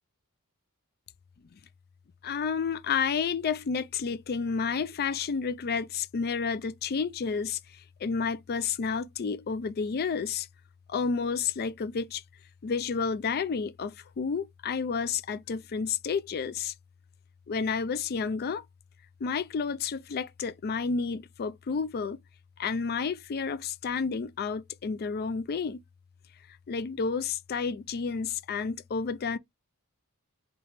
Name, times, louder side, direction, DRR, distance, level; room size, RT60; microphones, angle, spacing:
voice 1, 2.2-10.5 10.9-12.2 12.6-16.7 17.5-18.6 19.2-22.2 22.6-25.8 26.7-29.4, left 5 dB, 45° left, 0.4 m, -30 dB
3.3 x 3.0 x 4.1 m
head